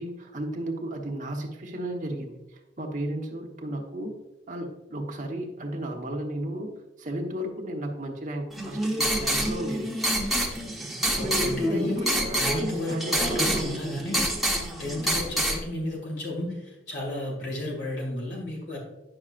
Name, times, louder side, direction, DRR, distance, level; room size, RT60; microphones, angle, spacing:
voice 1, 0.0-4.1 4.5-6.7 7.0-9.9 11.2-13.7, right 1 dB, 45° right, 2 dB, 1.2 m, -34 dB
sound 1, 8.5-15.6, right 1 dB, ahead, 1.1 m, -27 dB
voice 2, 11.1-14.2 14.8-18.8, left 1 dB, 70° left, -2 dB, 2.2 m, -32 dB
9.8 x 6.2 x 2.5 m, 1.0 s
head